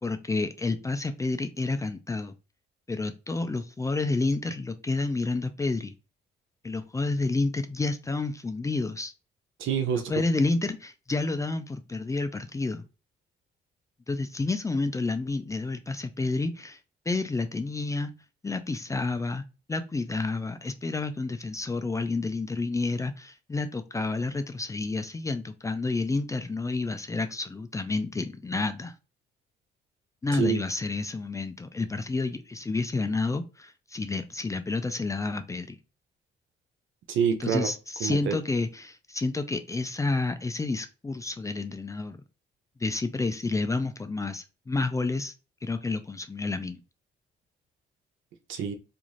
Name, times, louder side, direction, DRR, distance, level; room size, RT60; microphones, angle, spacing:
voice 1, 0.0-2.3 2.9-5.9 6.6-9.1 10.1-12.8 14.1-16.8 17.1-18.1 18.4-19.4 19.7-28.9 30.2-35.8 37.4-42.2 42.8-45.3 45.6-46.8, left 3 dB, 15° left, 9 dB, 0.3 m, -30 dB
voice 2, 9.6-10.1 30.3-30.6 37.1-37.7 38.0-38.4 48.5-48.7, right 7 dB, 80° right, 6 dB, 0.6 m, -27 dB
2.5 x 2.4 x 3.0 m, 0.31 s
cardioid pair, 90°, 20 cm